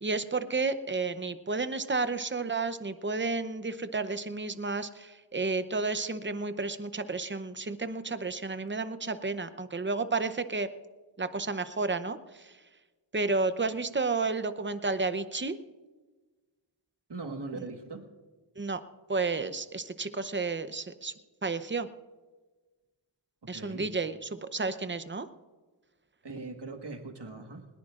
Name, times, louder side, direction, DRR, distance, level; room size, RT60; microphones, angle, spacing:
voice 1, 0.0-10.7 11.2-12.5 13.1-15.6 18.6-18.8 19.1-21.1 21.4-21.9 23.5-25.3, right 3 dB, 25° right, 11 dB, 0.7 m, -31 dB
voice 2, 17.1-18.1 23.4-23.9 26.2-27.7, right 3 dB, 55° right, 4 dB, 1.6 m, -40 dB
20.5 x 18.5 x 2.5 m, 1.3 s
wide cardioid pair, 45°, 49 cm